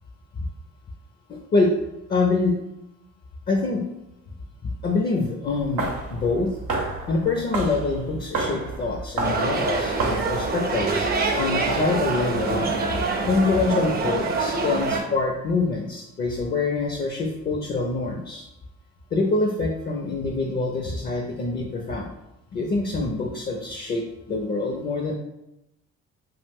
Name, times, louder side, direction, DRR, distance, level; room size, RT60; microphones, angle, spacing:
voice 1, 1.3-1.8 2.1-2.6 3.5-3.9 4.6-6.5 7.1-12.7 13.3-18.4 19.1-22.1 22.5-25.2, left 3 dB, 30° left, 1 dB, 0.5 m, -25 dB
sound 1, 5.5-13.3, right 3 dB, 80° right, 0.7 m, -32 dB
sound 2, 9.2-15.0, right 3 dB, 30° right, 0.5 m, -25 dB
2.4 x 2.0 x 3.5 m, 0.89 s
supercardioid pair, 65°, 32 cm